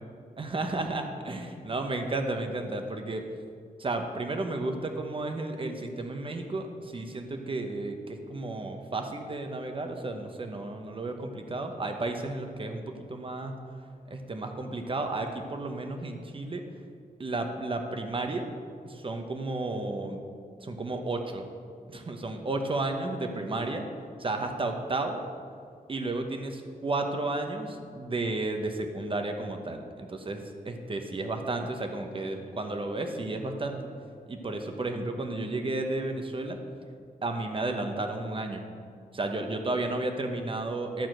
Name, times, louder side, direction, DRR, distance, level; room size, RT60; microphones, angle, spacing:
voice 1, 0.4-3.2 3.8-13.5 14.1-16.6 17.2-18.5 18.8-20.2 20.6-21.5 21.9-23.9 24.2-25.2 25.9-33.8 34.3-36.6 37.2-38.6 39.1-41.1, right 2 dB, 35° right, 5 dB, 1.0 m, -32 dB
12.0 x 4.3 x 7.7 m, 2.2 s
wide cardioid pair, 95°, 15 cm